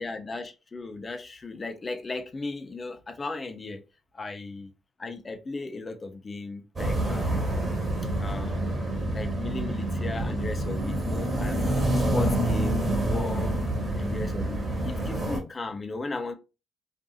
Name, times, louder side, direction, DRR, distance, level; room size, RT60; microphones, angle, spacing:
voice 1, 0.0-3.8 4.1-4.7 5.0-7.6 8.2-8.6 9.1-13.6 14.0-16.3, left 3 dB, 30° left, 0.5 m, -36 dB
sound 1, 6.8-15.4, right 1 dB, 30° right, 1.1 m, -27 dB
2.5 x 2.5 x 2.3 m
cardioid pair, 90°, 0 cm